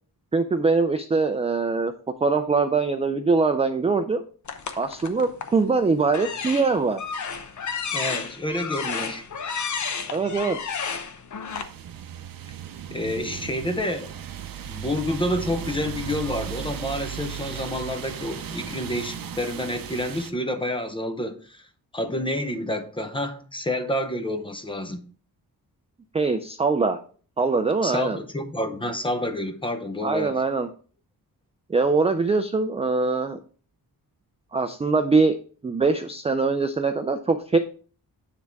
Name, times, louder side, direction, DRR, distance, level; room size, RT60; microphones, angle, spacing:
voice 1, 0.3-1.9 2.2-4.2 4.8-7.0 10.1-10.6 26.1-27.0 27.4-28.2 30.0-30.7 31.7-33.4 34.5-35.3 35.6-37.6, right 4 dB, 20° right, 0.3 m, -22 dB
sound 1, 4.5-5.6 6.1-11.6, left 6 dB, 50° left, 0.9 m, -31 dB
voice 2, 7.9-9.2 12.9-14.2 14.6-21.7 21.9-25.0 27.8-30.4, left 1 dB, 15° left, 0.6 m, -29 dB
sound 2, 11.5-20.3, right 8 dB, 65° right, 0.7 m, -36 dB
9.6 x 3.5 x 4.5 m
wide cardioid pair, 170°, 37 cm